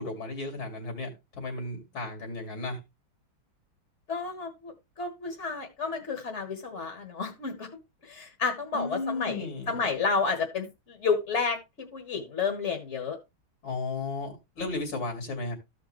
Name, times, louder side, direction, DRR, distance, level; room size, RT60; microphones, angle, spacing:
voice 1, 0.0-2.8 8.7-9.8 13.6-15.5, left 3 dB, 75° left, 3.1 m, -34 dB
voice 2, 4.1-7.7 8.0-13.2, left 5 dB, 40° left, 1.6 m, -31 dB
14.5 x 5.2 x 3.1 m
omnidirectional pair, 2.2 m